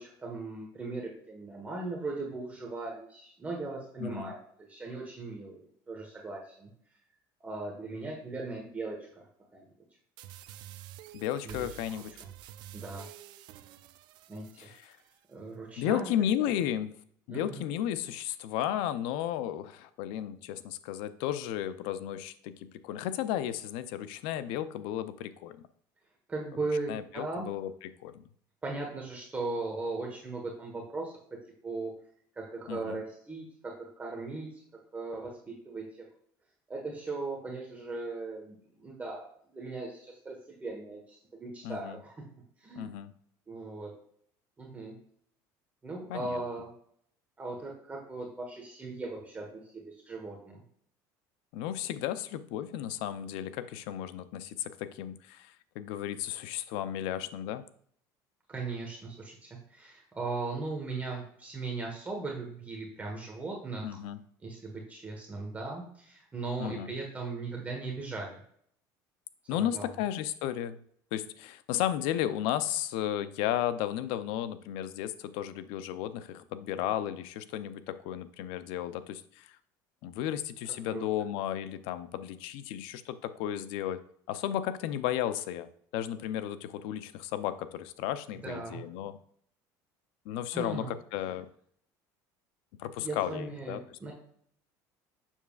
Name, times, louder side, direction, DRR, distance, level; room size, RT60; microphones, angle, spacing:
voice 1, 0.0-4.4 4.7-6.7 7.4-9.7 11.4-11.7 12.0-12.1 12.7-13.1 14.3-14.7 15.3-16.1 16.4-16.5 17.3-17.7 26.3-27.5 28.6-31.2 31.6-31.9 32.4-34.6 34.9-36.0 36.7-42.3 42.6-42.9 43.5-43.9 44.6-45.0 45.8-46.7 47.4-50.6 58.5-64.0 64.4-68.4 69.5-69.9 80.9-81.1 88.4-88.8 90.5-90.9 93.0-94.1, right 3 dB, 20° right, -1 dB, 1.3 m, -38 dB
voice 2, 4.0-4.3 11.1-12.1 14.6-15.0 15.8-16.9 17.3-25.6 26.9-28.2 32.7-33.0 41.6-42.0 42.8-43.1 46.1-46.4 51.5-57.6 63.8-64.2 66.6-66.9 69.5-70.8 71.1-79.6 80.0-84.0 84.3-85.7 85.9-89.2 90.3-91.5 92.8-94.0, left 11 dB, 80° left, 13 dB, 0.5 m, -34 dB
sound 1, 10.2-15.2, right 13 dB, 60° right, 0.5 m, -49 dB
7.2 x 6.7 x 2.4 m, 0.65 s
cardioid pair, 130°, 8 cm